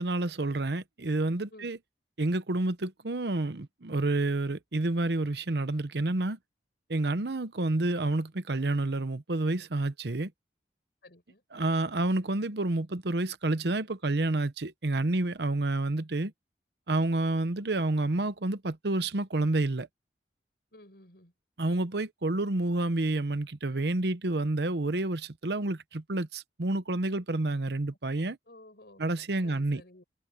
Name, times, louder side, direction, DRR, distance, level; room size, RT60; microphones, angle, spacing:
voice 1, 0.0-1.8 2.2-6.4 6.9-10.3 11.5-16.3 16.9-19.9 21.6-28.4 29.0-29.8, right 2 dB, 70° right, 0.9 m, -29 dB
voice 2, 11.0-11.4 20.7-21.3 28.2-29.0 29.4-30.0, left 1 dB, 60° left, 6.1 m, -54 dB
head